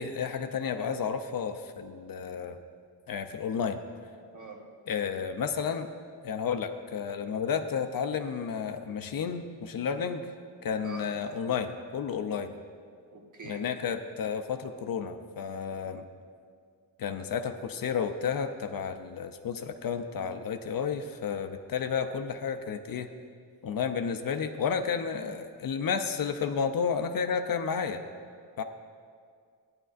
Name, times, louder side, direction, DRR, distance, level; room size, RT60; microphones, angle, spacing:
voice 1, 0.0-2.6 3.1-3.8 4.9-5.9 6.2-10.2 10.6-12.6 13.4-16.0 17.0-23.1 23.6-28.0 28.6-28.7, left 6 dB, 55° left, 8 dB, 0.5 m, -32 dB
voice 2, 4.3-4.7 10.8-11.1 13.1-13.7, right 3 dB, 45° right, 2 dB, 1.1 m, -43 dB
14.5 x 10.5 x 2.5 m, 2.1 s
wide cardioid pair, 155°, 43 cm